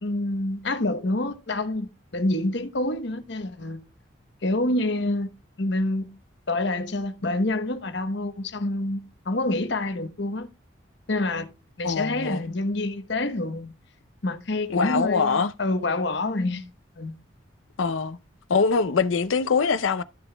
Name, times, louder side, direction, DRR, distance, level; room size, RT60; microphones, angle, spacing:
voice 1, 0.0-3.8 4.4-5.3 5.6-6.2 6.5-10.5 11.1-11.5 11.8-13.8 14.2-16.7 16.9-17.2, left 2 dB, 65° left, 1.0 m, -27 dB
voice 2, 11.8-12.5 14.7-15.5 17.8-18.2 18.5-20.0, left 5 dB, 85° left, 0.6 m, -23 dB
13.5 x 6.9 x 2.3 m
head